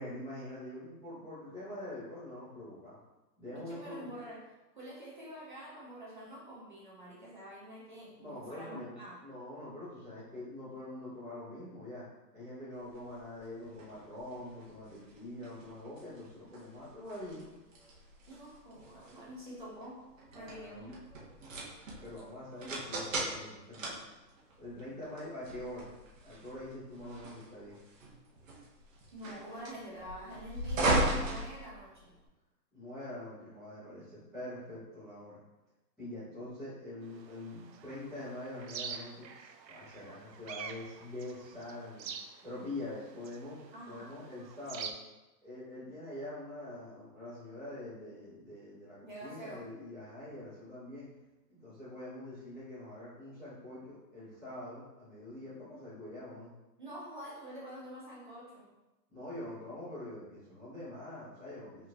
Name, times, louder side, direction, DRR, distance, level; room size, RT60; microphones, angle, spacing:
voice 1, 0.0-3.0 3.4-4.1 8.2-12.0 12.3-17.4 20.3-20.9 22.0-24.1 24.6-25.9 26.2-27.8 32.7-35.4 36.0-42.1 42.4-45.0 45.4-51.1 51.5-56.5 59.1-61.9, left 1 dB, ahead, -24 dB, 0.9 m, -44 dB
voice 2, 3.7-4.4 4.8-9.1 18.3-20.0 20.3-21.0 29.1-32.1 43.7-44.1 49.0-49.7 56.8-58.7, right 1 dB, 30° right, -6 dB, 0.9 m, -47 dB
sound 1, 12.9-32.3, right 1 dB, 50° right, 1.3 m, -38 dB
sound 2, 37.1-44.9, right 6 dB, 80° right, 0.7 m, -47 dB
5.8 x 3.7 x 2.4 m, 1.0 s
hypercardioid pair, 175°, 49 cm